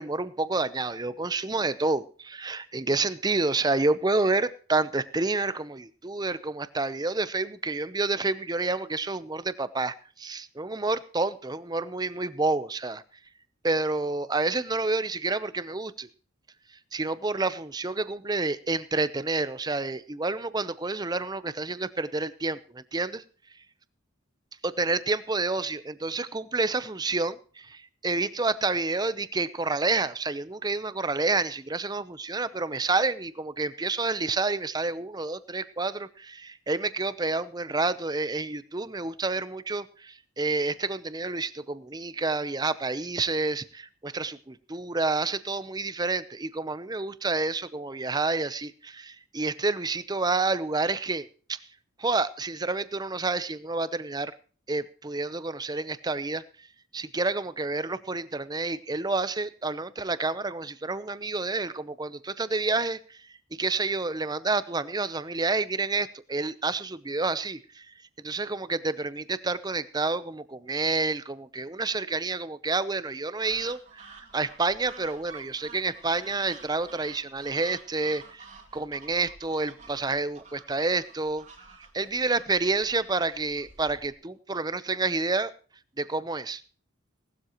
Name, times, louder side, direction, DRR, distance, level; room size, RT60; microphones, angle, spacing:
voice 1, 0.0-13.0 13.6-16.1 16.9-23.2 24.6-51.6 52.0-54.3 54.7-56.7 56.9-63.2 63.6-67.9 68.2-78.5 78.7-81.4 81.9-85.5 86.0-86.6, right 3 dB, 20° right, 14 dB, 0.7 m, -29 dB
sound 1, 73.4-84.1, right 4 dB, 35° right, 2.4 m, -50 dB
18.0 x 12.5 x 3.0 m, 0.41 s
head